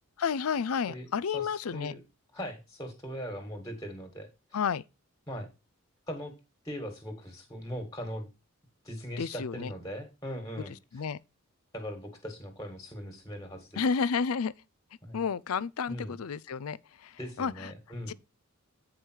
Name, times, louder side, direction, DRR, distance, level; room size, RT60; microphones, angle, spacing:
voice 1, 0.2-1.9 4.5-4.8 9.2-9.7 10.6-10.7 10.9-11.2 13.8-14.5 15.1-17.7 18.1-18.2, left 6 dB, 80° left, 0.5 m, -31 dB
voice 2, 1.3-2.0 2.3-4.3 5.3-5.5 6.1-6.3 6.6-8.3 8.8-11.0 11.7-13.8 15.0-15.2 15.9-16.2 17.2-18.1, equal, 15° left, 1.7 m, -40 dB
9.1 x 4.9 x 4.5 m
head